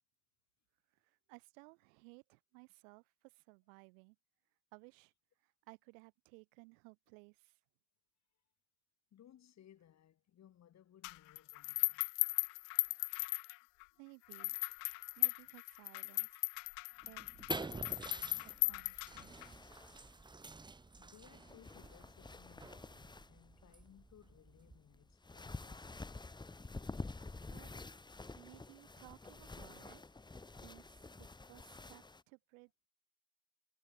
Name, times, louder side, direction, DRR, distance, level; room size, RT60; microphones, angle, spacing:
voice 1, 0.9-4.2 4.7-5.1 5.4-7.6 12.9-13.3 14.0-14.6 15.2-16.3 17.0-18.3 18.6-19.5 27.4-27.7 28.4-30.0 30.6-32.7, right 35 dB, 70° right, 3.0 m, -60 dB
voice 2, 9.1-12.1 21.0-26.2, left 11 dB, 40° left, 6.4 m, -63 dB
sound 1, 11.0-13.8 14.3-19.5, left 37 dB, 65° left, 0.7 m, -37 dB
sound 2, 17.0-25.1, right 3 dB, 10° right, 1.4 m, -50 dB
sound 3, 19.3-32.2, left 3 dB, 10° left, 2.4 m, -50 dB
supercardioid pair, 100°, 42 cm